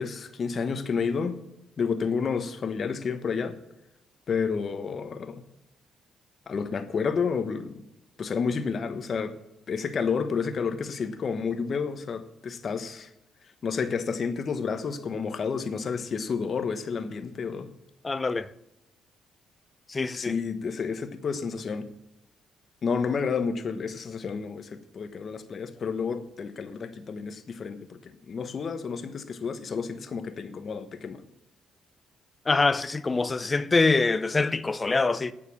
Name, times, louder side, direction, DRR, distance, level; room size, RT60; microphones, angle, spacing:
voice 1, 0.0-1.4 1.8-3.6 4.3-5.4 6.5-7.8 8.2-9.4 9.7-13.1 13.6-17.7 20.2-21.9 22.8-31.2, left 5 dB, 50° left, 1.2 m, -30 dB
voice 2, 18.0-18.5 19.9-20.4 32.5-35.3, left 3 dB, 25° left, 0.6 m, -24 dB
9.6 x 6.9 x 8.5 m
cardioid pair, 90°, 0 cm